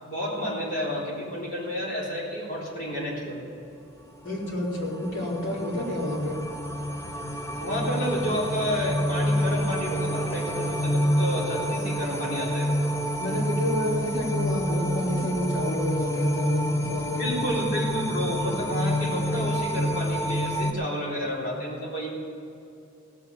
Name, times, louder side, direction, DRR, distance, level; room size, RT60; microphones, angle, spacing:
voice 1, 0.0-3.4 7.6-12.8 17.2-22.1, equal, 45° left, -5 dB, 3.9 m, -30 dB
voice 2, 4.2-6.4 13.2-17.4, left 1 dB, 70° left, -5 dB, 3.7 m, -29 dB
sound 1, 4.5-20.7, equal, 15° left, 0.6 m, -28 dB
17.0 x 7.0 x 7.2 m, 2.7 s
head